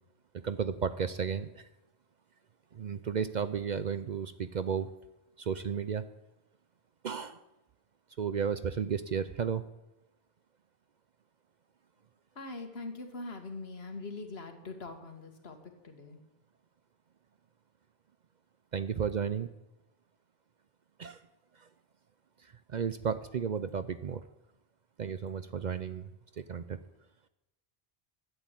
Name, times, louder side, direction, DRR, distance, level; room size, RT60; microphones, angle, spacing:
voice 1, 0.4-1.6 2.7-4.9 5.4-6.1 7.0-7.4 8.2-9.6 18.7-19.5 21.0-21.2 21.6-21.7 22.7-24.2 25.0-26.1 26.4-26.8, right 7 dB, 55° right, 12 dB, 0.6 m, -33 dB
voice 2, 12.4-15.6 15.8-16.2, left 3 dB, 70° left, 5 dB, 1.9 m, -42 dB
12.0 x 8.1 x 8.9 m, 0.94 s
omnidirectional pair, 1.1 m